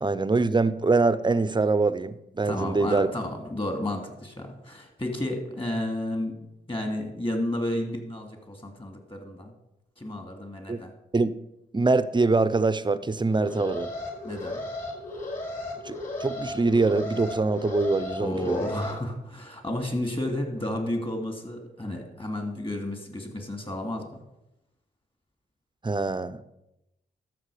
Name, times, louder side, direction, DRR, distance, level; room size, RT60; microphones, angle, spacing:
voice 1, 0.0-3.1 10.7-10.8 11.1-11.4 11.7-13.9 15.8-18.6 25.8-26.4, right 3 dB, 25° right, 0.7 m, -24 dB
voice 2, 2.4-9.5 10.0-10.9 14.2-14.6 18.2-24.2, left 1 dB, 25° left, 2.7 m, -32 dB
Alarm, 13.3-18.9, left 2 dB, 45° left, 4.5 m, -35 dB
13.0 x 6.2 x 5.0 m
supercardioid pair, 50°, 20 cm